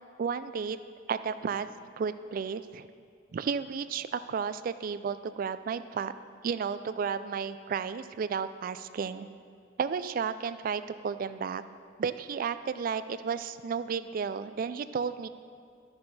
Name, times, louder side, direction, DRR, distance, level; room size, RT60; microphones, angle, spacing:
voice 1, 0.2-0.8 1.1-1.7 2.0-2.9 3.3-6.1 6.4-9.3 9.8-11.6 12.0-15.3, right 6 dB, 45° right, 13 dB, 0.3 m, -33 dB
12.0 x 6.7 x 4.1 m, 2.3 s
head